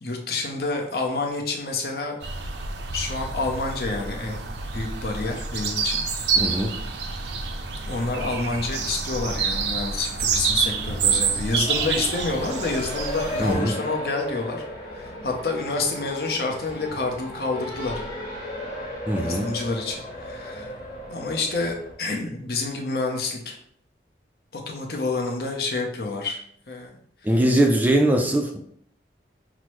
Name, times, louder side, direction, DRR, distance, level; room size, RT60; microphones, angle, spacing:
voice 1, 0.0-2.2 2.9-4.4 4.7-6.0 7.9-14.6 14.9-17.9 19.2-20.8 21.1-23.6 24.5-26.4 26.7-27.0, left 3 dB, 60° left, 1 dB, 0.7 m, -28 dB
sound 1, 2.2-13.5, right 5 dB, 80° right, 0.5 m, -28 dB
voice 2, 6.4-6.7 13.4-13.7 19.1-19.5 27.2-28.6, right 1 dB, 10° right, 2 dB, 0.3 m, -21 dB
Race car auto racing, 7.9-21.9, left 1 dB, 25° left, 1.2 m, -36 dB
6.0 x 2.0 x 3.0 m, 0.67 s
head